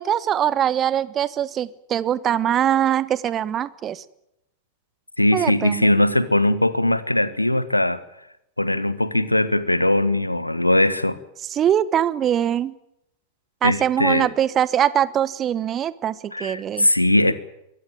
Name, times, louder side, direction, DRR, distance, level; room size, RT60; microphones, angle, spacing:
voice 1, 0.0-4.0 5.3-6.0 11.5-12.7 13.6-16.9, right 10 dB, 30° right, 19 dB, 1.1 m, -22 dB
voice 2, 5.2-8.0 8.6-11.2 13.6-14.3 16.3-17.3, left 1 dB, 85° left, 16 dB, 1.5 m, -20 dB
23.0 x 17.5 x 9.2 m, 0.81 s
figure-of-eight pair, 90°, 0 cm